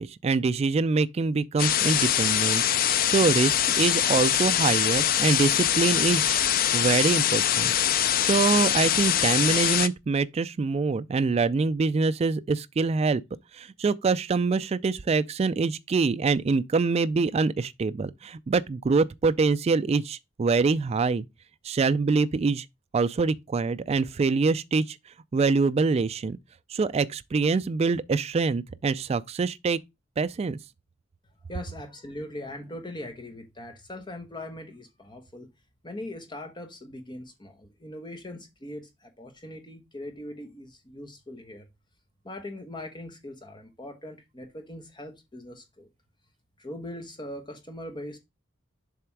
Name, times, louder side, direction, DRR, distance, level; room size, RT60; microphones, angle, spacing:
voice 1, 0.0-6.4 6.7-7.7 8.2-13.2 13.5-21.3 21.6-22.7 22.9-25.0 25.3-26.4 26.7-29.8 30.2-30.6, right 4 dB, 30° right, 0.3 m, -25 dB
sound 1, 1.6-9.9, left 10 dB, 45° left, 0.4 m, -23 dB
voice 2, 31.5-35.5 35.8-41.7 42.2-45.9 46.6-48.2, left 1 dB, 25° left, 1.1 m, -40 dB
7.2 x 3.3 x 4.5 m
head